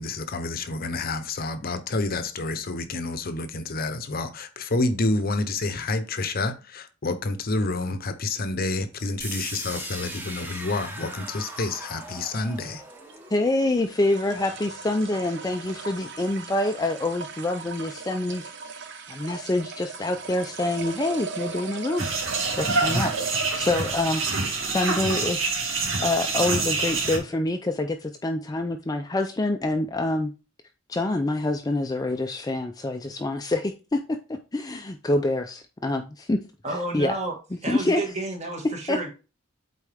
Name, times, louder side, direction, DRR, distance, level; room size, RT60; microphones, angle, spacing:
voice 1, 0.0-12.8, left 2 dB, 50° left, 0.8 m, -28 dB
sound 1, 9.0-26.2, right 5 dB, 60° right, 0.9 m, -38 dB
sound 2, 9.2-15.1, right 1 dB, 10° right, 1.1 m, -40 dB
voice 2, 13.3-18.5 19.1-22.1 22.6-23.1 23.6-24.3 24.7-25.5 26.0-30.3 30.9-36.4 36.9-37.2 37.7-38.0 38.9-39.1, left 2 dB, 20° left, 0.5 m, -26 dB
sound 3, 22.0-27.2, right 3 dB, 80° right, 2.1 m, -26 dB
voice 3, 36.6-37.3 37.6-39.1, right 2 dB, 35° right, 1.7 m, -31 dB
8.3 x 4.2 x 3.5 m
head